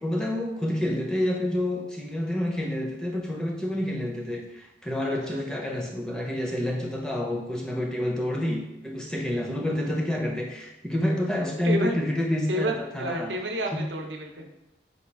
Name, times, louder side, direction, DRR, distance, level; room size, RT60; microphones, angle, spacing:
voice 1, 0.0-13.3 13.7-13.8, left 1 dB, 5° left, -2 dB, 0.5 m, -28 dB
voice 2, 11.6-12.0 12.5-14.5, right 1 dB, 90° right, 2 dB, 0.6 m, -30 dB
4.1 x 2.3 x 4.5 m, 0.97 s
head